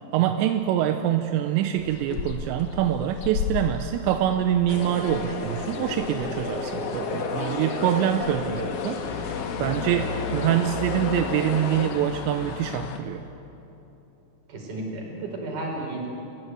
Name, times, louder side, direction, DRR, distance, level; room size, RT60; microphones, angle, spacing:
voice 1, 0.1-13.2, right 11 dB, 80° right, 7 dB, 2.9 m, -25 dB
sound 1, 1.8-13.0, left 6 dB, 70° left, 2.1 m, -35 dB
sound 2, 4.7-11.9, left 4 dB, 90° left, 1.3 m, -32 dB
voice 2, 14.5-16.1, right 2 dB, 45° right, 0 dB, 5.9 m, -33 dB
28.0 x 17.0 x 9.6 m, 3.0 s
omnidirectional pair, 5.4 m